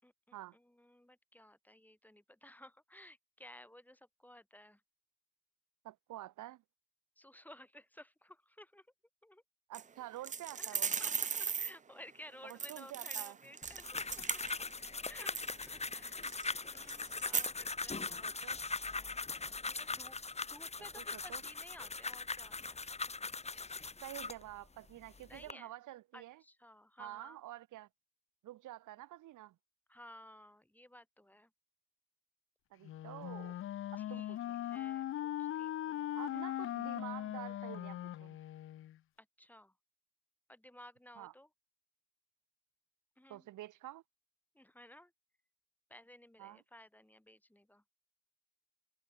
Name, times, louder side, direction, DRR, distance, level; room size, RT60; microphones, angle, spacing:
voice 1, 0.0-4.8 7.2-8.9 9.2-9.4 10.5-14.6 15.0-18.5 18.8-19.2 19.6-20.2 20.4-22.8 25.3-25.7 26.1-27.4 29.9-31.5 34.0-36.4 39.2-39.8 40.5-41.5 43.2-43.5 44.5-45.1 45.9-47.8, left 1 dB, 5° left, 5.8 m, -57 dB
voice 2, 5.8-6.6 9.7-10.9 12.4-13.4 18.2-18.6 21.0-21.4 24.0-26.4 27.0-27.9 28.4-29.6 32.7-33.6 33.9-34.6 36.2-38.4 41.2-41.3 43.3-44.0 46.4-46.6, right 15 dB, 80° right, 1.9 m, -48 dB
sound 1, 9.7-9.8 10.2-11.7 12.5-14.9 15.2-15.7 16.2-16.5 16.8-17.5, right 6 dB, 25° right, 0.5 m, -37 dB
sound 2, 13.6-24.4 25.1-25.5, left 4 dB, 20° left, 1.7 m, -41 dB
Wind instrument woodwind instrument, 32.8-39.0, left 12 dB, 45° left, 0.4 m, -40 dB
cardioid pair, 90°, 30 cm